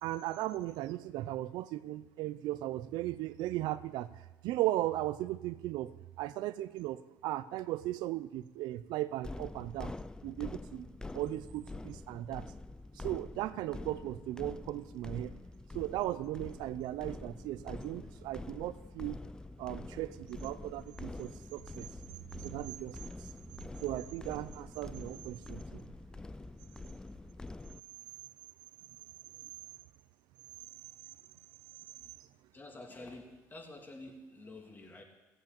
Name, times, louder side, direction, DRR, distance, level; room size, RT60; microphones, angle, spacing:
voice 1, 0.0-4.1 4.4-9.9 10.2-10.9 11.1-12.5 12.9-15.4 15.7-19.2 19.6-21.9 22.4-23.3 23.8-25.8, right 15 dB, 75° right, 14 dB, 0.6 m, -37 dB
sound 1, 9.2-27.8, left 2 dB, 10° left, 0.4 m, -46 dB
voice 2, 32.5-35.0, left 2 dB, 25° left, 2 dB, 2.9 m, -49 dB
16.0 x 7.9 x 8.8 m, 1.1 s
cardioid pair, 95°, 7 cm